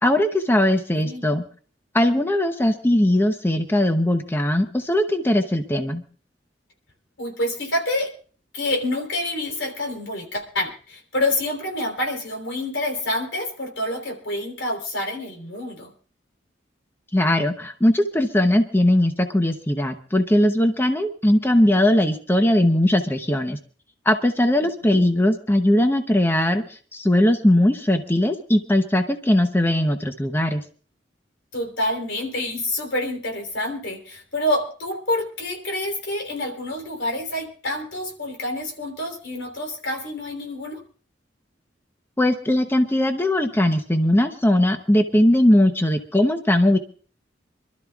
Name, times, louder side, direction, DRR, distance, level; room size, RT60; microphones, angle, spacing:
voice 1, 0.0-1.4 1.9-6.0 17.1-23.6 24.1-30.6 42.2-46.8, left 1 dB, 10° left, 6 dB, 0.8 m, -19 dB
voice 2, 0.9-1.4 7.2-8.1 8.5-15.9 24.6-25.0 31.5-40.8, left 1 dB, 80° left, 2 dB, 3.6 m, -27 dB
27.0 x 12.5 x 2.4 m, 0.42 s
head